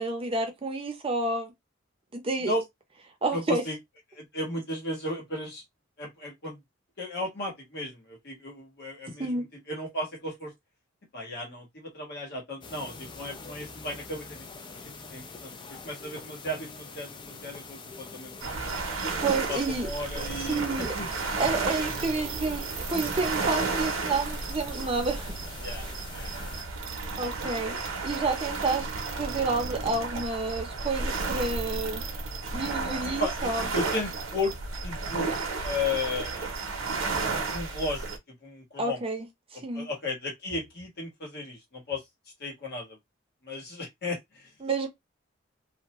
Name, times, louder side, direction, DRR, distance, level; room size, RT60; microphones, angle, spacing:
voice 1, 0.0-1.5 2.1-2.5 3.2-3.6 9.2-9.5 19.2-19.9 20.4-20.9 21.4-22.6 22.9-25.3 27.2-27.8 28.0-28.9 29.2-32.0 32.5-33.7 38.8-39.3 39.5-39.9 44.6-44.9, right 3 dB, 30° right, 0.6 m, -29 dB
voice 2, 3.3-3.8 4.1-5.6 6.0-6.6 7.0-10.5 11.1-14.7 15.1-18.7 19.5-21.4 25.6-26.3 27.0-27.5 33.2-34.5 34.8-35.3 35.6-36.6 37.5-39.0 39.5-42.0 42.4-43.0 43.4-44.5, left 2 dB, 55° left, 1.3 m, -35 dB
sound 1, 12.6-26.6, left 4 dB, 25° left, 0.4 m, -44 dB
sound 2, 18.4-38.2, right 4 dB, 90° right, 0.6 m, -32 dB
2.5 x 2.1 x 2.9 m
head